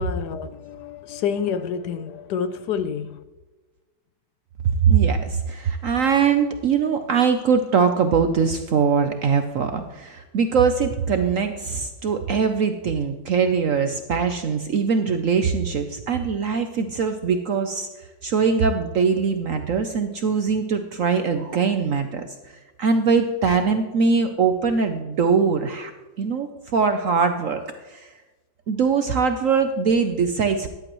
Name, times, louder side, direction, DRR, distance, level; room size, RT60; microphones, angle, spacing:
voice 1, 0.0-3.2, left 7 dB, 70° left, 1.1 m, -28 dB
voice 2, 4.8-22.2 22.8-25.9 26.2-28.1 28.7-30.7, right 5 dB, 60° right, 0.8 m, -22 dB
14.0 x 11.0 x 3.0 m
omnidirectional pair, 2.0 m